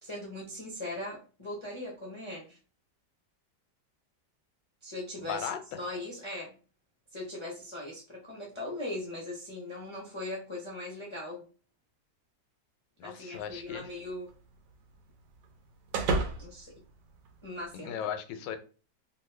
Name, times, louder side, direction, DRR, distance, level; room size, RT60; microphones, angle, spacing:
voice 1, 0.0-2.6 4.8-6.6 7.1-11.5 13.0-14.3 16.4-16.7 17.4-18.0, left 1 dB, 35° left, -5 dB, 0.5 m, -39 dB
voice 2, 5.2-5.6 13.0-13.9 17.7-18.6, left 9 dB, 90° left, 9 dB, 1.2 m, -37 dB
sound 1, 13.3-17.8, right 3 dB, 80° right, 1.3 m, -37 dB
2.9 x 2.6 x 3.1 m, 0.36 s
omnidirectional pair, 1.9 m